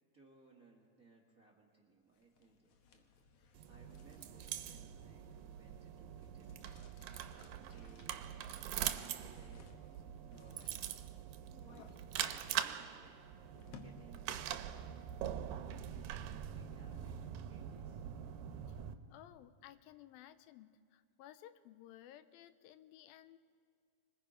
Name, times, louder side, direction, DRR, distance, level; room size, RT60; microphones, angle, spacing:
voice 1, 0.1-3.1 3.7-6.8 7.3-11.0 11.5-13.2 13.7-15.1 15.7-18.0, right 3 dB, 30° right, -2 dB, 1.6 m, -64 dB
sound 1, 2.1-14.5, left 5 dB, 65° left, 1.6 m, -62 dB
sound 2, 3.6-18.9, right 10 dB, 85° right, 2.4 m, -43 dB
voice 2, 19.1-23.4, left 12 dB, 85° left, 12 dB, 2.5 m, -57 dB
25.5 x 20.5 x 5.1 m, 2.2 s
omnidirectional pair, 4.1 m